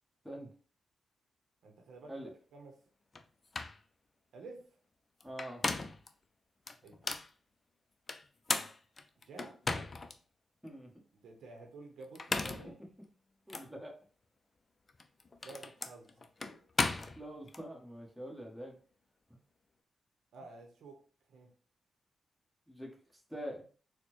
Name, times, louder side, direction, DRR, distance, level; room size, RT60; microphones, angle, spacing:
voice 1, 1.6-2.8 4.3-4.8 6.8-7.2 9.2-9.6 11.1-12.8 15.4-16.1 20.3-21.5, right 3 dB, 90° right, 3 dB, 0.7 m, -51 dB
sound 1, 3.1-3.2 3.5-3.8 5.2-6.1 6.7-7.3 8.1-10.2 10.7-10.8 12.0-12.7 13.5-13.7 14.9-17.6, left 3 dB, 40° left, 0.4 m, -36 dB
voice 2, 5.2-5.6 10.6-10.9 13.5-13.9 16.9-18.8 22.7-22.9 23.3-23.6, equal, ahead, -1 dB, 1.2 m, -44 dB
4.0 x 2.1 x 3.0 m, 0.39 s
cardioid pair, 70°, 0 cm